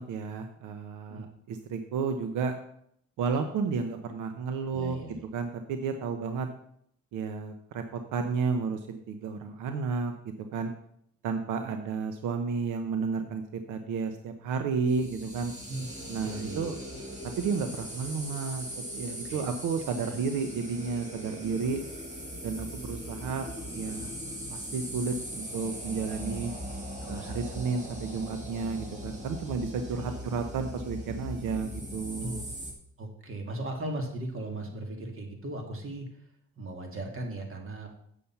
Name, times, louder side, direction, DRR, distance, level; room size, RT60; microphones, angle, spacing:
voice 1, 0.0-2.6 3.2-5.0 5.3-6.5 7.1-10.1 10.4-10.7 11.2-15.5 16.1-16.8 17.4-21.8 22.4-23.5 23.7-24.1 24.5-26.5 27.1-32.4, right 5 dB, 90° right, 7 dB, 0.9 m, -32 dB
voice 2, 4.7-5.2 15.7-15.9 16.2-16.6 19.2-19.4 20.1-20.2 27.0-27.5 29.9-30.2 32.2-32.4 33.0-36.2 36.6-37.9, right 1 dB, 45° right, 3 dB, 2.5 m, -38 dB
sound 1, 14.9-32.7, equal, 25° right, 2.7 m, -40 dB
8.3 x 7.0 x 5.8 m, 0.69 s
cardioid pair, 90°, 30 cm